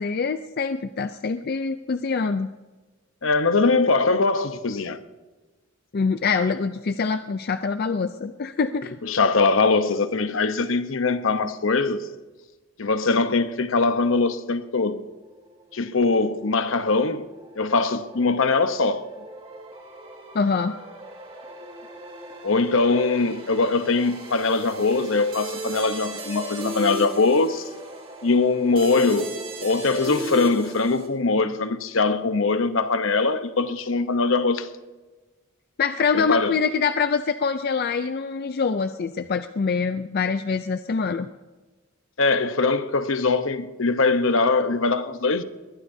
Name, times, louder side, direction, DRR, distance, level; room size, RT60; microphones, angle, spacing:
voice 1, 0.0-2.5 5.9-9.0 20.3-20.7 35.8-41.3, left 5 dB, 50° left, 0.5 m, -25 dB
voice 2, 3.2-5.0 9.0-12.1 12.8-15.0 15.7-17.3 17.6-19.1 22.4-27.7 28.2-34.7 36.1-36.5 42.2-45.4, left 3 dB, 70° left, 0.9 m, -22 dB
sound 1, 14.9-31.1, right 2 dB, 25° right, 2.4 m, -38 dB
21.5 x 20.5 x 2.7 m
head